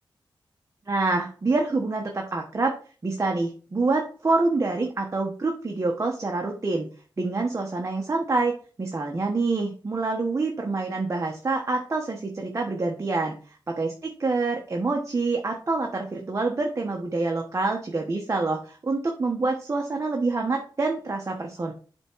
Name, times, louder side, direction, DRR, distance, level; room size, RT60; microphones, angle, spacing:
voice 1, 0.9-2.8 3.0-6.9 7.2-13.4 13.7-21.7, right 3 dB, 35° right, 1 dB, 1.1 m, -26 dB
7.7 x 3.6 x 4.5 m, 0.40 s
wide cardioid pair, 85°, 8 cm